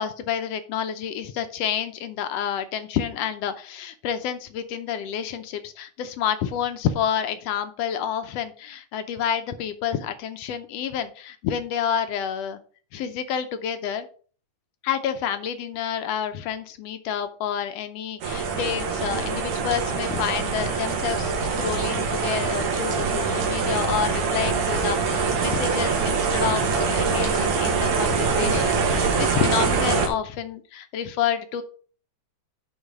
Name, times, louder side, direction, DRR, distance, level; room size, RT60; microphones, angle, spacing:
voice 1, 0.0-12.6 12.9-14.1 14.8-31.6, left 8 dB, 75° left, 9 dB, 1.5 m, -29 dB
sound 1, 18.2-30.1, right 5 dB, 90° right, 2.9 m, -24 dB
11.0 x 4.0 x 4.8 m, 0.42 s
omnidirectional pair, 3.5 m